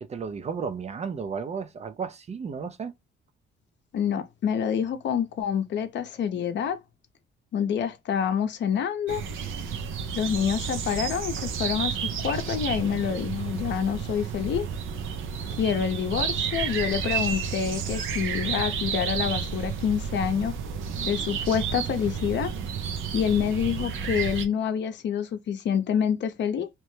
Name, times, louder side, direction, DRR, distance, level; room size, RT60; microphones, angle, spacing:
voice 1, 0.0-2.9, right 6 dB, 35° right, 0.4 m, -33 dB
voice 2, 3.9-6.8 7.5-9.2 10.1-14.7 15.6-20.5 21.0-22.5 23.1-26.7, left 8 dB, 65° left, 0.7 m, -27 dB
sound 1, 9.1-24.5, right 6 dB, 85° right, 0.6 m, -31 dB
2.9 x 2.1 x 3.1 m
cardioid pair, 90°, 20 cm